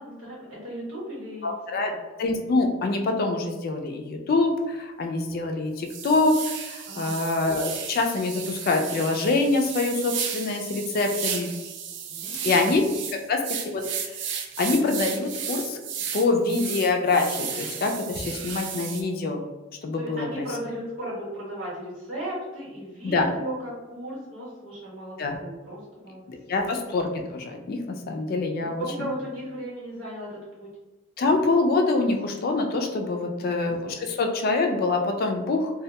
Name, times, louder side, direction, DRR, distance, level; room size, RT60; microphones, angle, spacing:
voice 1, 0.0-1.5 1.8-2.0 6.9-7.2 12.1-12.7 20.0-26.2 26.5-26.6 28.6-30.7 33.1-33.6, right 1 dB, 80° right, -6 dB, 1.2 m, -36 dB
voice 2, 1.4-1.9 2.2-6.4 6.6-11.5 12.4-12.8 13.3-13.8 14.6-15.8 16.1-19.4 19.8-20.3 23.0-23.3 25.2-25.4 26.3-28.9 31.2-35.7, left 3 dB, 50° left, 4 dB, 0.3 m, -25 dB
sound 1, 4.6-4.7 5.3-5.4 5.9-19.0, right 7 dB, 60° right, 0.3 m, -34 dB
2.2 x 2.1 x 2.7 m, 1.1 s
head